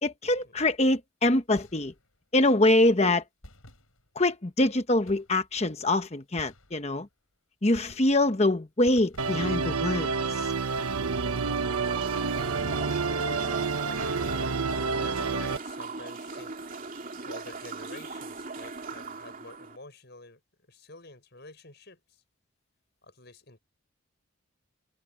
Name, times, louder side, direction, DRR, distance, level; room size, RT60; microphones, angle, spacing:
voice 1, 0.0-1.9 2.3-3.2 4.2-7.1 7.6-10.1, left 2 dB, 30° left, 1.0 m, -24 dB
sound 1, 1.6-2.3 3.4-4.4 5.0-5.7 6.4-7.2 7.7-8.4 8.8-9.7, left 1 dB, 75° left, 7.1 m, -53 dB
Musical instrument, 9.2-15.6, right 4 dB, 85° right, 1.1 m, -29 dB
sound 2, 11.1-19.8, right 4 dB, 40° right, 2.9 m, -39 dB
voice 2, 15.0-16.6 17.2-20.4 20.7-22.2 23.0-23.6, left 3 dB, 50° left, 7.3 m, -48 dB
head